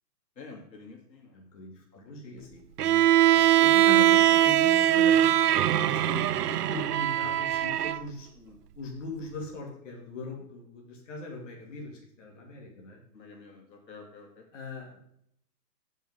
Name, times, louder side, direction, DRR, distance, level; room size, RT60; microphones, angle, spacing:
voice 1, 0.4-1.4 1.9-2.4 5.8-5.9 8.4-8.6 13.1-14.4, left 4 dB, 85° left, 2 dB, 3.0 m, -49 dB
voice 2, 1.3-8.3 8.8-13.0 14.5-15.0, left 2 dB, 45° left, -1 dB, 2.5 m, -40 dB
Bowed string instrument, 2.8-8.0, right 12 dB, 70° right, 0.5 m, -22 dB
14.5 x 5.5 x 3.7 m, 0.70 s
hypercardioid pair, 170°, 50 cm